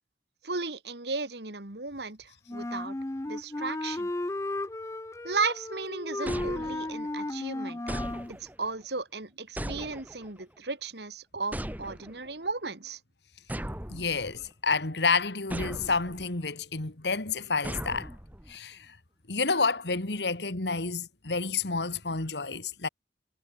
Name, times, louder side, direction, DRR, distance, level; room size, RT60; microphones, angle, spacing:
voice 1, 0.4-3.0 3.3-4.1 5.2-7.8 8.3-13.0, right 4 dB, 70° right, 2.7 m, -35 dB
Wind instrument woodwind instrument, 2.5-8.3, left 1 dB, 15° left, 0.5 m, -34 dB
sound 1, 6.3-7.1 7.9-8.7 9.6-10.4 11.5-12.3 13.5-14.5 15.5-16.3 17.6-18.6, right 1 dB, 10° right, 1.6 m, -38 dB
voice 2, 13.9-18.1 18.5-19.0 19.3-22.9, left 4 dB, 75° left, 2.1 m, -29 dB
head